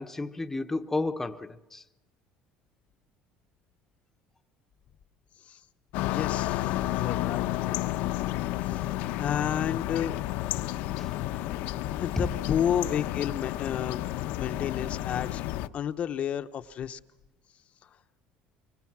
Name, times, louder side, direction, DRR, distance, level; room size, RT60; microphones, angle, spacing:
voice 1, 0.0-1.8 11.0-11.1 12.2-12.3, left 2 dB, 10° left, 1.0 m, -32 dB
sound 1, 5.9-15.7, left 15 dB, 75° left, 1.0 m, -31 dB
voice 2, 6.0-7.5 8.7-8.8 9.2-10.1 12.0-14.0 14.4-15.4 15.7-17.0, left 9 dB, 45° left, 0.9 m, -31 dB
25.5 x 23.5 x 6.0 m
cardioid pair, 130°, 3 cm